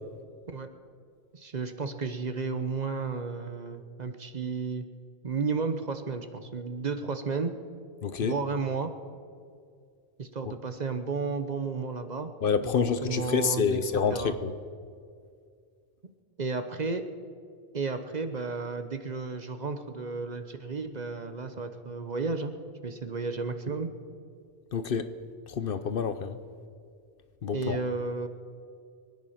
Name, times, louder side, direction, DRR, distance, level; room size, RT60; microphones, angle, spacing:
voice 1, 1.3-4.8 5.2-7.5 8.2-8.9 10.2-12.3 12.6-13.8 14.1-14.4 16.4-17.0 17.7-22.5 22.8-23.9 27.5-28.3, right 4 dB, 45° right, 9 dB, 0.9 m, -33 dB
voice 2, 8.0-8.3 10.5-10.6 12.4-14.5 24.7-25.1 25.5-26.4 27.4-27.8, left 6 dB, 60° left, 11 dB, 0.9 m, -28 dB
24.5 x 9.6 x 5.7 m, 2.2 s
omnidirectional pair, 1.1 m